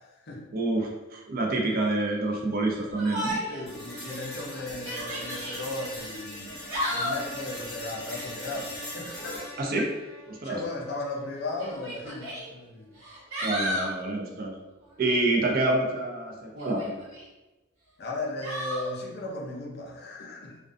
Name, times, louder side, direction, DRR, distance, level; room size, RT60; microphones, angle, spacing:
voice 1, 0.0-0.4 3.5-6.6 6.9-9.4 10.4-12.9 13.7-13.8 18.0-20.6, left 2 dB, 50° left, -2 dB, 0.5 m, -36 dB
voice 2, 0.5-3.4 9.6-9.9 10.3-10.6 13.4-14.5 15.0-17.0, right 2 dB, 45° right, 1 dB, 0.4 m, -27 dB
Yell, 3.0-3.6 4.1-4.2 4.7-5.6 6.5-7.3 9.0-9.5 10.6-10.7 11.6-12.4 13.0-13.9 16.6-17.2 18.4-18.9, equal, 85° right, 1.3 m, -33 dB
sound 1, 3.7-11.7, left 1 dB, ahead, 0.7 m, -41 dB
2.4 x 2.2 x 2.4 m, 1.1 s
head